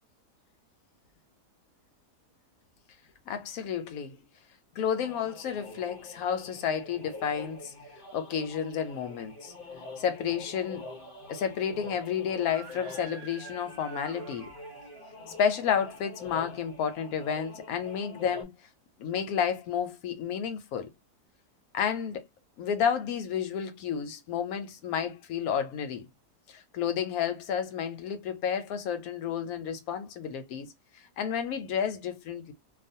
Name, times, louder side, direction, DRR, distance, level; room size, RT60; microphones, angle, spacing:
voice 1, 3.3-4.2 4.7-7.7 8.1-9.5 10.0-10.9 11.3-14.5 15.3-18.5 19.0-20.9 21.7-22.3 22.6-26.1 26.5-32.5, left 8 dB, 70° left, 1.0 m, -31 dB
sound 1, 5.0-18.4, left 1 dB, 50° left, 0.6 m, -45 dB
Screaming, 12.4-15.2, right 6 dB, 65° right, 0.8 m, -49 dB
2.5 x 2.4 x 2.6 m
omnidirectional pair, 1.7 m